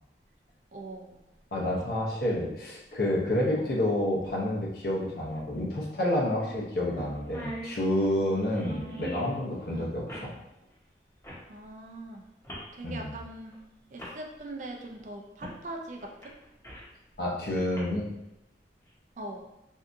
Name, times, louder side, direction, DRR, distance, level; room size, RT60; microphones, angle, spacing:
voice 1, 0.7-1.2 1.6-1.9 3.6-3.7 7.0-7.1 8.6-9.2 9.7-9.9 11.5-12.3 12.7-13.6 13.9-16.3 19.2-19.5, right 2 dB, 45° right, 2 dB, 0.4 m, -42 dB
voice 2, 1.5-10.3 12.8-13.1 17.2-18.1, left 1 dB, 60° left, -3 dB, 0.7 m, -29 dB
sound 1, 5.3-5.4 5.8-5.9 6.4-6.6 6.9-7.0 7.2-9.4 10.1-10.3 11.2-11.5 12.4-12.7 13.5-13.6 14.0-14.2 15.4-15.6 16.0-16.9 17.6-17.8, equal, 15° left, 0.8 m, -41 dB
3.4 x 2.7 x 2.5 m, 0.88 s
head